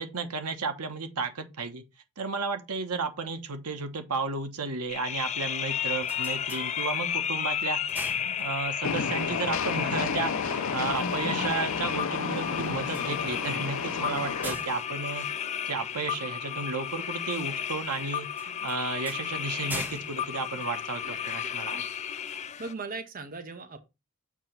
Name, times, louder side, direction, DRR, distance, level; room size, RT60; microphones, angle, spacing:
voice 1, 0.0-1.8 2.2-7.8 8.4-15.3 15.7-21.8, right 4 dB, 85° right, 1.1 m, -33 dB
sound 1, 4.9-22.7, left 9 dB, 30° left, 0.3 m, -33 dB
sound 2, 5.8-7.3 7.6-9.0 12.7-16.2 18.3-21.4, right 1 dB, 10° right, 0.9 m, -44 dB
Train, 8.8-14.5, left 5 dB, 60° left, 0.7 m, -31 dB
voice 2, 21.4-21.8 22.4-23.8, right 3 dB, 40° right, 0.8 m, -40 dB
7.2 x 3.0 x 5.7 m
head